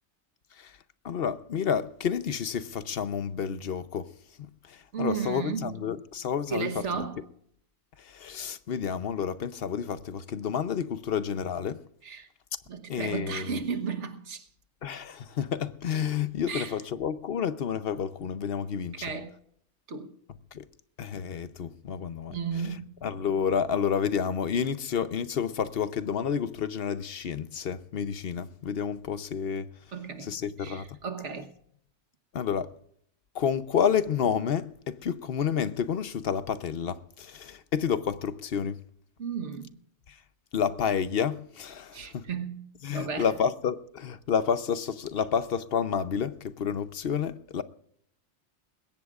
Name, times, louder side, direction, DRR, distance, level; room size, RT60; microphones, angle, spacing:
voice 1, 1.0-4.1 4.7-7.1 8.0-11.8 12.9-13.6 14.8-19.1 20.5-20.6 21.0-29.7 30.2-30.9 32.3-32.7 33.3-38.8 40.1-40.2 40.5-42.3 42.8-47.6, left 7 dB, 60° left, 1.0 m, -30 dB
voice 2, 4.9-5.7 6.5-7.2 12.0-12.3 12.7-14.4 16.5-16.7 18.9-19.3 19.9-20.1 22.3-22.9 29.9-30.3 30.6-31.5 39.2-39.7 41.9-43.3, right 6 dB, 85° right, 1.6 m, -34 dB
21.0 x 17.5 x 2.5 m
omnidirectional pair, 1.2 m